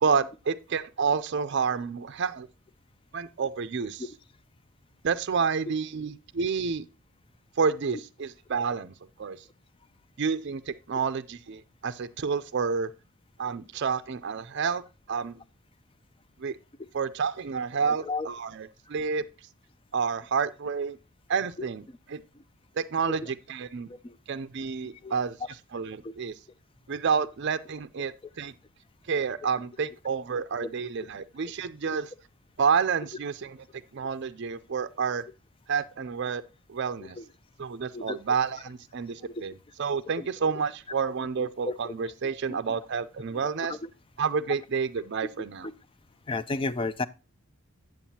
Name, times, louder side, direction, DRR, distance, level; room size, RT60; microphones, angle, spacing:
voice 1, 0.0-2.5 3.1-4.0 5.0-6.9 7.6-8.9 9.2-9.4 10.2-12.9 13.4-14.8 15.1-15.4 16.4-16.6 16.9-19.2 19.9-21.0 21.3-21.8 22.1-22.2 22.8-23.9 24.3-25.4 25.7-26.3 26.9-28.5 29.1-32.1 32.6-33.6 33.9-35.2 35.7-36.4 36.7-37.2 37.6-39.5 39.8-43.8 44.2-45.7, right 5 dB, 55° right, 0.5 m, -29 dB
voice 2, 17.8-18.3 21.9-22.0 22.3-22.4 23.2-23.3 23.9-24.2 24.9-25.1 26.0-26.1 30.6-30.7 31.4-31.5 37.0-37.3 37.9-38.2 40.2-40.3 41.4-41.9 42.5-42.8 43.3-43.8 44.5-44.6 45.6-45.7 46.3-47.1, left 3 dB, 25° left, 0.4 m, -34 dB
9.0 x 7.6 x 2.8 m
head